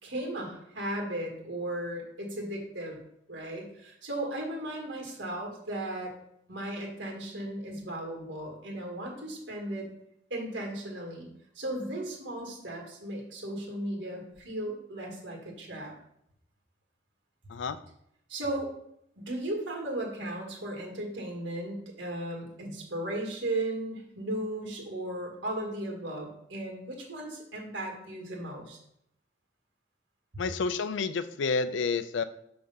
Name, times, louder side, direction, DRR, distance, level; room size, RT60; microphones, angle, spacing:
voice 1, 0.0-3.0 3.3-6.1 6.5-9.9 10.3-11.3 11.6-15.9 18.3-18.7 19.2-28.8 30.3-30.4, right 1 dB, 80° right, 0 dB, 1.8 m, -36 dB
voice 2, 30.4-32.2, left 4 dB, 80° left, 13 dB, 0.4 m, -29 dB
6.4 x 3.4 x 5.5 m, 0.75 s
head